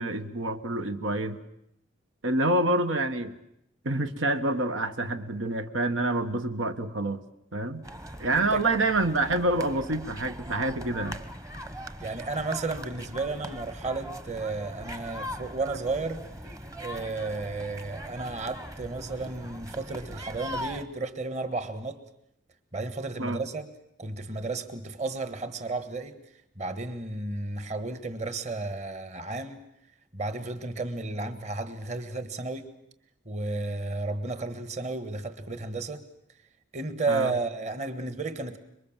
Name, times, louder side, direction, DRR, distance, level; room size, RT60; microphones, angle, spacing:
voice 1, 0.0-1.4 2.2-3.4 3.8-7.2 7.5-7.8 8.2-11.2 23.2-23.4 37.1-37.3, right 2 dB, 85° right, 1.3 m, -27 dB
sound 1, 7.8-20.9, equal, 15° right, 1.0 m, -40 dB
voice 2, 8.3-8.6 12.0-16.2 16.8-22.0 22.7-23.7 24.0-26.2 26.6-29.6 30.1-32.7 33.2-36.0 36.7-38.6, right 3 dB, 35° right, 1.5 m, -33 dB
26.0 x 23.0 x 7.4 m
head